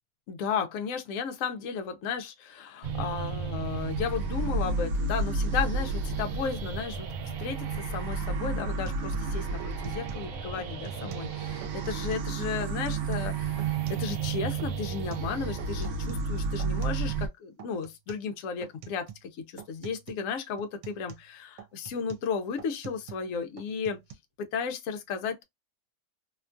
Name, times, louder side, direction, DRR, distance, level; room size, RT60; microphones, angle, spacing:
voice 1, 0.3-7.1 7.4-24.0 24.4-25.4, left 6 dB, 65° left, 0.9 m, -34 dB
sound 1, 2.8-17.3, right 4 dB, 65° right, 0.8 m, -31 dB
sound 2, 8.1-8.3 8.6-10.3 10.6-11.3 11.6-12.3 12.6-14.3 14.6-17.3 17.6-18.3 18.6-19.3 19.6-20.3 20.6-23.3 23.6-24.1, right 9 dB, 80° right, 1.2 m, -47 dB
2.9 x 2.2 x 2.5 m
omnidirectional pair, 1.8 m